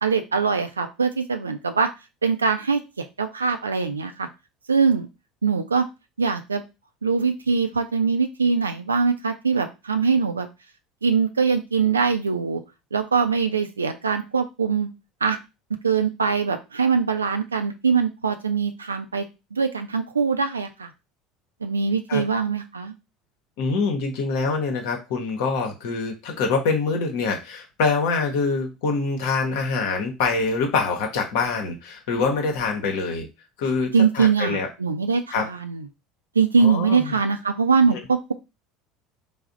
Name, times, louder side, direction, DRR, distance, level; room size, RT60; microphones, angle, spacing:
voice 1, 0.0-1.9 2.2-4.3 4.7-5.1 5.4-5.9 6.2-6.6 7.0-10.5 11.0-12.6 12.9-14.9 15.2-15.4 15.8-19.2 19.5-20.9 21.6-22.9 33.9-35.8 36.4-38.3, right 5 dB, 85° right, 7 dB, 0.3 m, -22 dB
voice 2, 23.6-33.3 33.6-34.7 35.3-35.5 36.6-37.1, left 4 dB, 60° left, 3 dB, 0.8 m, -25 dB
3.3 x 2.0 x 3.8 m, 0.26 s
figure-of-eight pair, 65°, 0 cm